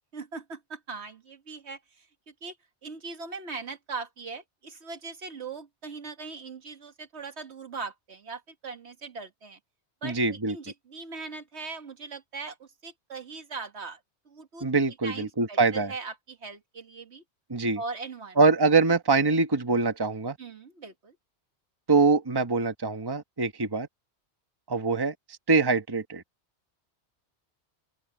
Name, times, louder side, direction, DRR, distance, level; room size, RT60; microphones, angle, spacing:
voice 1, 0.1-2.0 2.4-2.5 2.8-9.6 10.0-14.0 14.3-14.7 15.0-17.2 17.8-18.4 20.4-21.1, right 4 dB, 70° right, 1.8 m, -40 dB
voice 2, 10.0-10.6 14.6-15.9 17.5-17.8 18.4-20.4 21.9-23.9 24.7-25.1 25.5-26.2, right 4 dB, 20° right, 1.1 m, -24 dB
open air
omnidirectional pair, 1.2 m